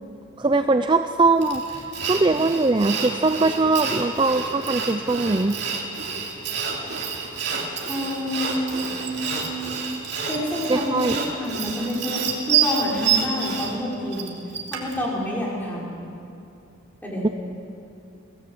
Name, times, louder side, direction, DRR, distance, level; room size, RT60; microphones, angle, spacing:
voice 1, 0.4-5.6 10.7-11.2 17.2-17.3, right 3 dB, 25° right, 8 dB, 0.5 m, -21 dB
Sawing, 1.4-15.0, right 6 dB, 55° right, 3.1 m, -28 dB
voice 2, 7.9-9.7 10.3-14.4 14.7-16.0 17.0-17.3, left 1 dB, 10° left, -4 dB, 4.7 m, -28 dB
23.0 x 18.0 x 7.8 m, 2.6 s
head